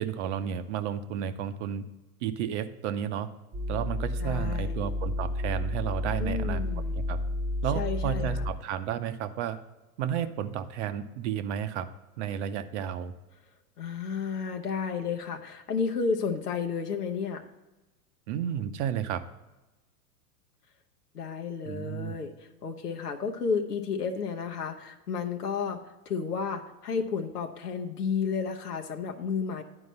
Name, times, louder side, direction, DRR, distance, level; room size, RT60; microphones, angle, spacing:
voice 1, 0.0-1.9 2.2-3.3 3.7-6.6 6.9-7.2 7.6-9.6 10.0-11.9 12.2-13.1 18.3-19.2 21.7-22.1, right 9 dB, 50° right, 11 dB, 0.7 m, -32 dB
sound 1, 3.5-8.5, left 1 dB, 15° right, 0.8 m, -31 dB
voice 2, 4.2-4.9 6.2-6.9 7.7-8.5 13.8-17.5 21.1-29.6, left 5 dB, 90° left, 3 dB, 0.9 m, -32 dB
9.8 x 4.7 x 5.4 m, 1.1 s
hypercardioid pair, 110°, 46 cm